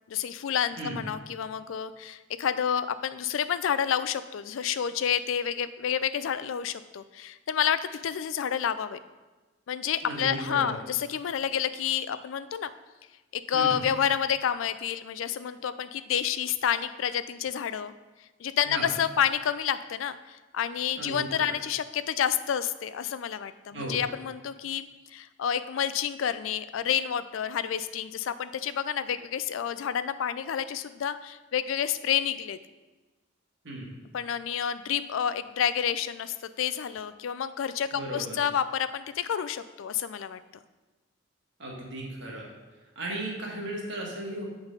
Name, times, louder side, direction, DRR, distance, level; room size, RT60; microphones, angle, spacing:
voice 1, 0.1-9.0 9.7-12.7 13.3-17.9 18.4-24.9 25.1-32.6 34.1-40.4, left 8 dB, 75° left, 13 dB, 0.4 m, -29 dB
voice 2, 10.0-10.7 13.5-13.8 18.7-18.9 21.0-21.4 23.7-24.0 33.6-33.9 37.9-38.4 41.6-42.5 43.0-44.4, right 1 dB, 60° right, -3 dB, 1.7 m, -35 dB
8.0 x 4.0 x 5.2 m, 1.2 s
head